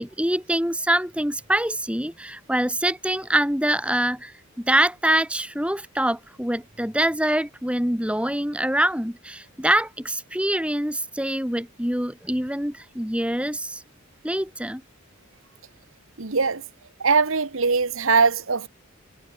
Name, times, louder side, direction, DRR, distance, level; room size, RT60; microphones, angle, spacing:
voice 1, 0.0-13.8 14.2-14.8, right 1 dB, 5° right, 2.5 m, -25 dB
voice 2, 16.2-16.6 17.0-18.7, right 4 dB, 65° right, 1.2 m, -21 dB
head